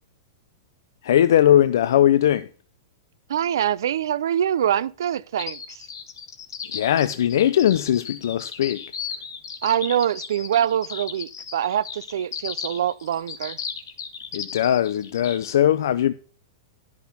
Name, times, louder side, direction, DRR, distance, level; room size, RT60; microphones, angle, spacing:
voice 1, 1.0-2.5 6.7-8.8 14.3-16.1, left 11 dB, 65° left, 0.5 m, -19 dB
voice 2, 3.3-5.8 9.6-13.6, right 10 dB, 75° right, 0.4 m, -24 dB
sound 1, 5.4-15.5, left 7 dB, 90° left, 1.8 m, -35 dB
12.0 x 6.0 x 5.8 m
supercardioid pair, 170°, 2 cm